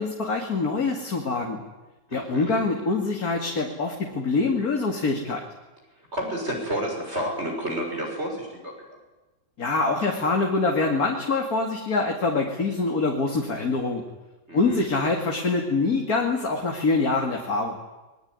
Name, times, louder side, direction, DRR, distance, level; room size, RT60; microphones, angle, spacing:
voice 1, 0.0-1.6 2.1-5.4 9.6-14.0 14.5-17.8, left 3 dB, 55° left, 1 dB, 2.9 m, -25 dB
voice 2, 2.1-2.6 6.1-8.7 14.5-14.9, equal, 35° right, 1 dB, 6.8 m, -30 dB
23.5 x 22.0 x 9.7 m, 1.1 s
omnidirectional pair, 1.9 m